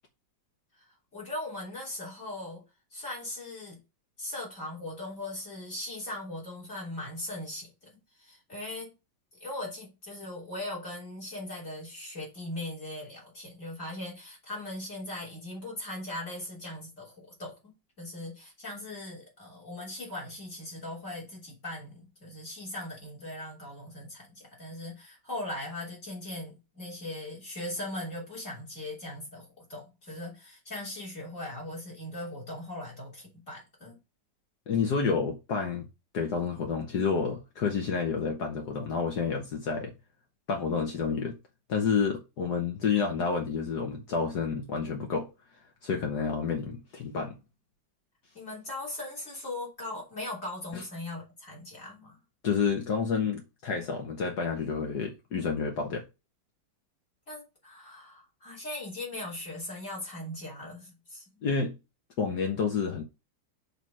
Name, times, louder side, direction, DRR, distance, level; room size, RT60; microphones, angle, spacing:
voice 1, 1.1-2.6 2.9-3.8 4.2-7.7 8.2-8.9 9.4-34.0 48.3-52.2 57.3-61.4, left 1 dB, 40° left, 3.7 m, -39 dB
voice 2, 34.7-35.9 36.1-39.9 40.5-41.4 41.7-45.3 45.8-47.4 50.7-50.8 52.4-56.0 61.4-61.8 62.2-63.0, left 5 dB, 65° left, 1.5 m, -29 dB
6.6 x 3.5 x 6.1 m
omnidirectional pair, 2.0 m